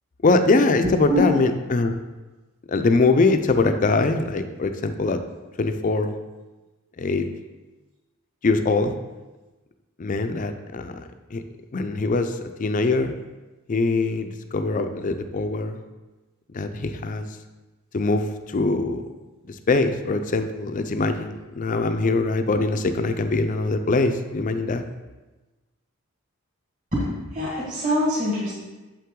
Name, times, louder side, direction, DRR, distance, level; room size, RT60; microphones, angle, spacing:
voice 1, 0.2-2.0 2.7-5.2 5.6-6.1 7.0-7.3 8.4-8.9 10.0-11.0 11.3-11.4 11.7-13.1 13.7-15.8 16.5-17.2 17.9-19.1 19.5-24.8, left 3 dB, 35° left, 8 dB, 0.4 m, -22 dB
voice 2, 26.9-28.5, left 1 dB, 35° right, -8 dB, 1.8 m, -24 dB
6.9 x 5.6 x 3.7 m, 1.2 s
head